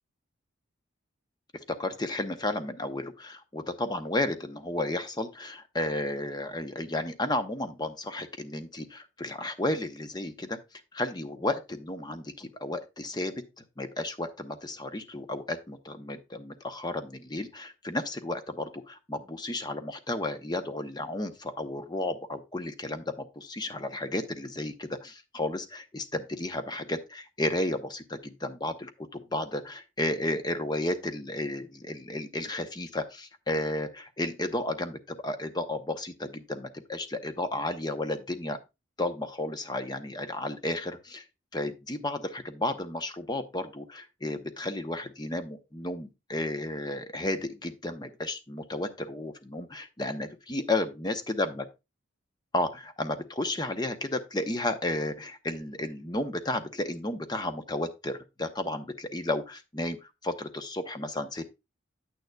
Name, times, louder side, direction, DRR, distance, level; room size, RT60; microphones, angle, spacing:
voice 1, 1.7-10.6 10.9-38.6 39.0-41.2 41.5-51.6 52.5-61.4, left 1 dB, 20° left, 8 dB, 0.7 m, -33 dB
9.2 x 9.1 x 2.3 m, 0.25 s
head